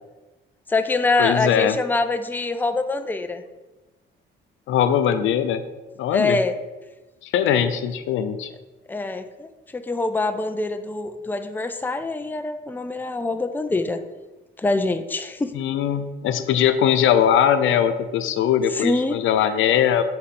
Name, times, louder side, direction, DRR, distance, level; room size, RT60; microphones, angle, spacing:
voice 1, 0.7-3.4 6.1-6.5 8.9-14.0 14.6-15.5 18.7-19.2, left 3 dB, 10° left, 9 dB, 0.5 m, -24 dB
voice 2, 1.2-1.8 4.7-5.7 6.0-6.4 7.2-8.5 15.5-20.0, left 9 dB, 80° left, 11 dB, 0.6 m, -20 dB
7.8 x 4.3 x 4.2 m, 1.1 s
cardioid pair, 90°, 20 cm